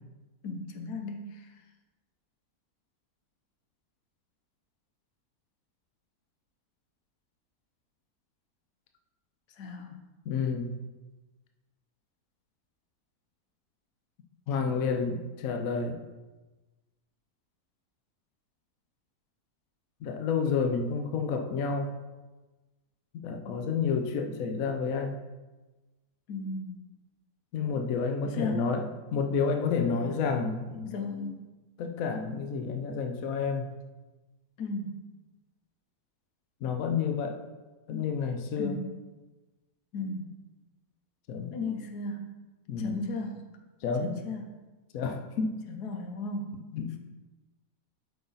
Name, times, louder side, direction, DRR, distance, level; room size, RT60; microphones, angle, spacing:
voice 1, 0.4-1.5 9.6-10.0 23.4-23.6 26.3-26.8 28.2-28.7 29.8-30.3 30.8-31.5 34.6-35.0 38.6-38.9 39.9-40.3 41.5-42.3 42.8-43.6 44.0-44.5 45.7-46.6, left 3 dB, 85° left, 4 dB, 1.4 m, -36 dB
voice 2, 10.3-10.7 14.5-16.0 20.0-21.9 23.2-25.2 27.5-30.9 31.8-33.7 36.6-37.4 37.9-38.8 41.3-41.6 42.7-43.0 43.8-44.1 44.9-45.6 46.7-47.0, left 5 dB, 65° left, 4 dB, 1.1 m, -30 dB
8.1 x 5.5 x 4.0 m, 1.2 s
omnidirectional pair, 1.6 m